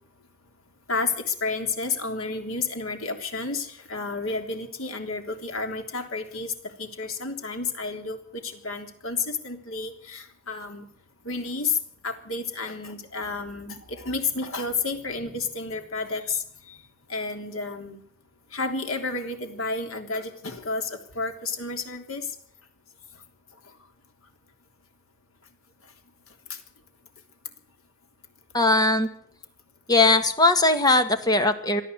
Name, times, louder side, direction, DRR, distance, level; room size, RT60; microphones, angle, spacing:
voice 1, 0.9-6.5 6.8-8.2 8.4-10.9 11.2-11.8 12.0-16.8 17.1-18.0 18.5-22.3, left 3 dB, 90° left, 5 dB, 3.4 m, -31 dB
voice 2, 28.5-29.1 29.9-31.8, left 2 dB, 20° left, 9 dB, 1.8 m, -20 dB
23.5 x 13.5 x 8.1 m, 0.63 s
head